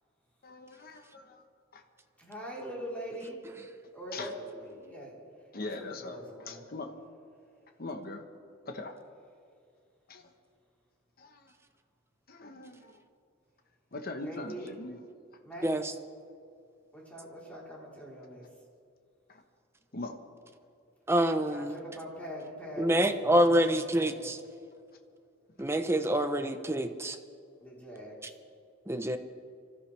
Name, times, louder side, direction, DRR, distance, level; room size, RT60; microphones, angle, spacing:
voice 1, 0.4-1.4 1.7-1.8 4.1-4.3 5.5-6.2 6.4-6.9 7.8-8.2 8.7-9.0 10.1-10.2 11.2-11.4 12.3-12.9 13.9-15.0 19.9-20.2, left 2 dB, 45° left, 5 dB, 1.2 m, -40 dB
voice 2, 2.2-3.4 3.9-5.2 5.7-6.6 14.2-14.8 15.4-15.7 16.9-18.4 21.4-24.3 27.6-28.2, equal, 5° left, -5 dB, 3.9 m, -43 dB
voice 3, 21.1-21.7 22.8-24.4 25.6-27.2 28.9-29.2, right 1 dB, 10° right, 7 dB, 0.8 m, -26 dB
25.0 x 13.5 x 3.4 m, 2.3 s
head